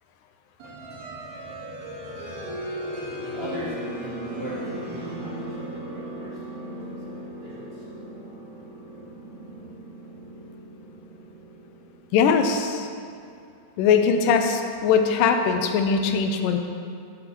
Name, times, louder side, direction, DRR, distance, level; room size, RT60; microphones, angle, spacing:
sound 1, 0.6-13.1, right 1 dB, 85° right, 3.3 m, -37 dB
voice 1, 3.2-7.0 7.3-7.8, equal, 70° right, -10 dB, 0.5 m, -39 dB
voice 2, 12.1-12.9 13.8-16.6, left 6 dB, 80° left, 6 dB, 2.2 m, -21 dB
10.5 x 10.5 x 3.1 m, 2.5 s
omnidirectional pair, 4.0 m